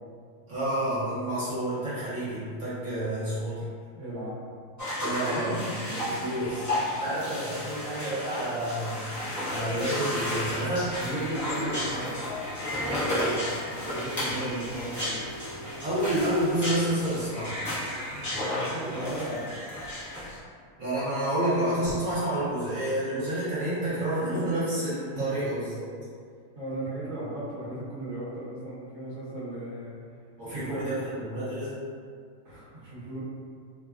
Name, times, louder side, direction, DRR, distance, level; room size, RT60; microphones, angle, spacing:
voice 1, 0.5-3.6 5.0-5.5 6.2-9.0 9.5-10.9 15.8-17.5 20.8-25.9 30.4-31.7, right 1 dB, 60° right, -11 dB, 1.2 m, -29 dB
voice 2, 3.9-4.3 5.3-6.1 10.9-12.1 12.6-15.2 18.1-19.8 25.1-25.4 26.5-29.9 30.4-30.9 32.4-33.2, right 1 dB, 35° right, -10 dB, 0.9 m, -36 dB
sound 1, 4.8-20.4, left 1 dB, 25° left, 0.3 m, -33 dB
3.1 x 2.2 x 2.4 m, 2.1 s
omnidirectional pair, 1.7 m